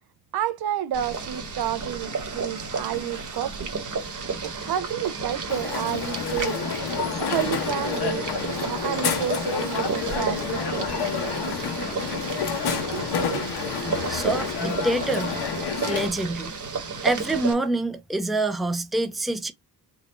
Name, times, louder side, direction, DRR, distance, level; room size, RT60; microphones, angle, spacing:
voice 1, 0.3-3.8 4.4-6.6 7.2-8.2 8.6-11.1 12.9-13.4, right 11 dB, 75° right, 0.7 m, -30 dB
Boiling, 0.9-17.5, right 4 dB, 50° right, 1.3 m, -32 dB
Crowd, 5.5-16.1, left 6 dB, 80° left, 1.3 m, -29 dB
voice 2, 14.1-15.4 15.9-16.5 17.0-19.5, right 2 dB, ahead, 0.5 m, -26 dB
4.0 x 2.3 x 4.3 m
wide cardioid pair, 135°, 38 cm